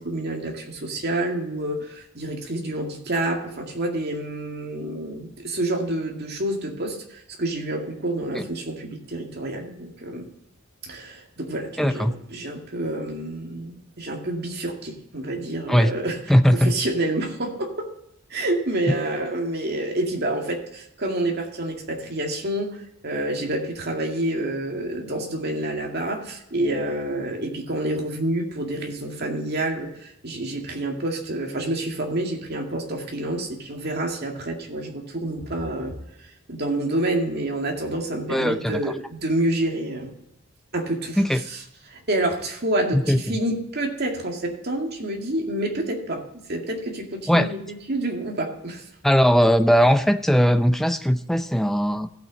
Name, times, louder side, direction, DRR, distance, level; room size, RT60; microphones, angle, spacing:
voice 1, 0.0-10.3 10.8-16.2 16.5-17.9 18.3-35.9 36.5-40.1 40.7-41.2 41.9-46.2 46.5-48.9, right 1 dB, 55° right, 2 dB, 2.1 m, -28 dB
voice 2, 11.8-12.1 15.7-15.9 16.3-16.8 18.9-19.0 38.3-38.9 41.2-41.4 42.9-43.4 47.3-47.5 49.0-52.1, equal, ahead, 9 dB, 0.5 m, -19 dB
16.0 x 6.1 x 4.0 m, 0.84 s
head